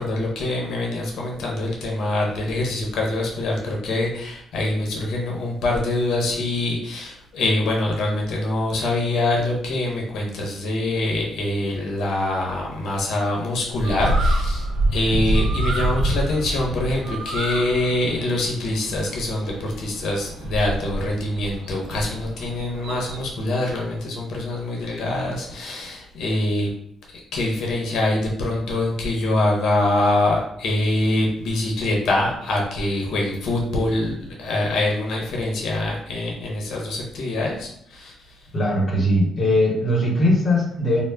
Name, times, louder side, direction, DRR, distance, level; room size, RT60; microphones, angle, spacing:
voice 1, 0.0-26.7 27.3-38.1, left 2 dB, 75° left, -1 dB, 0.6 m, -24 dB
Bird, 13.7-23.3, right 1 dB, 70° right, 0.4 m, -26 dB
voice 2, 38.5-41.0, left 1 dB, 40° left, -2 dB, 0.9 m, -20 dB
2.0 x 2.0 x 3.4 m, 0.71 s
cardioid pair, 90°, 0 cm